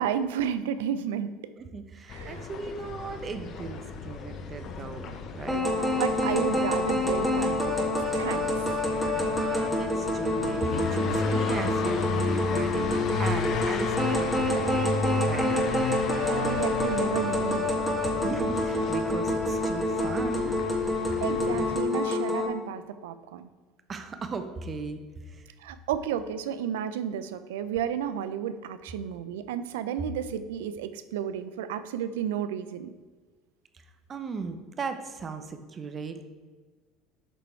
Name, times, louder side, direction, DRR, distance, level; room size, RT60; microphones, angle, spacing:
voice 1, 0.0-1.3 2.1-2.4 5.5-8.5 16.2-17.8 21.2-23.5 25.6-32.9, right 9 dB, 80° right, 12 dB, 0.4 m, -32 dB
voice 2, 1.6-5.6 9.2-15.5 18.2-20.6 23.9-25.0 25.3-25.4 34.1-36.2, right 4 dB, 35° right, 8 dB, 0.9 m, -37 dB
sound 1, 2.1-21.8, left 4 dB, 50° left, 0.8 m, -34 dB
sound 2, 5.5-22.5, left 1 dB, ahead, 1.5 m, -27 dB
7.8 x 5.1 x 4.5 m, 1.3 s
hypercardioid pair, 85°, 0 cm